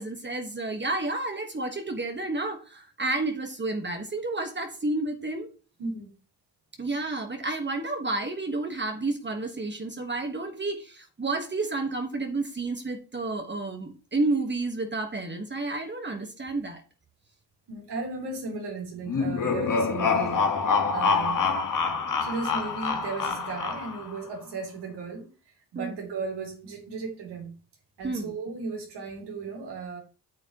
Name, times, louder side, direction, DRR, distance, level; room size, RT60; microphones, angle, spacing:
voice 1, 0.0-5.5 6.8-16.8 25.7-25.9 28.0-28.3, right 2 dB, 30° right, 1.4 m, -30 dB
voice 2, 5.8-6.1 17.7-20.5 20.9-21.5 22.2-25.3 25.7-27.5 28.0-30.0, right 4 dB, 80° right, 3.3 m, -35 dB
sound 1, 19.1-24.2, left 5 dB, 50° left, 1.6 m, -26 dB
8.7 x 7.1 x 3.0 m
cardioid pair, 70°, 40 cm